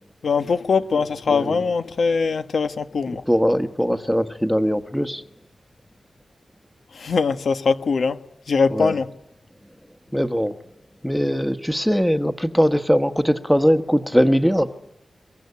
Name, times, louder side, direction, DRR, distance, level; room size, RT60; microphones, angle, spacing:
voice 1, 0.2-3.2 6.9-8.2 8.5-9.1, left 5 dB, 75° left, 1.5 m, -21 dB
voice 2, 1.3-1.6 3.3-5.2 8.7-9.0 10.1-10.6 11.0-14.7, equal, ahead, 1.4 m, -20 dB
24.5 x 23.0 x 9.7 m
wide cardioid pair, 140°, 0 cm